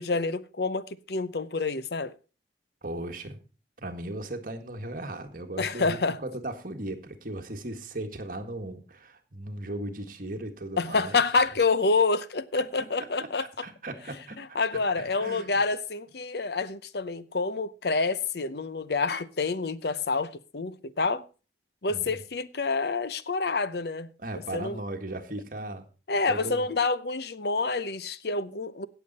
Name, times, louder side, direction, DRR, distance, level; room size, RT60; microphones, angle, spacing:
voice 1, 0.0-2.2 5.6-6.2 10.8-13.7 14.4-21.2 21.8-24.1 24.5-24.8 26.1-28.9, left 4 dB, 60° left, 0.7 m, -28 dB
voice 2, 2.8-3.4 3.8-11.2 12.6-12.7 13.2-15.5 21.9-22.2 24.2-25.9 26.3-26.7, right 1 dB, 50° right, 1.7 m, -37 dB
17.0 x 7.1 x 4.1 m
head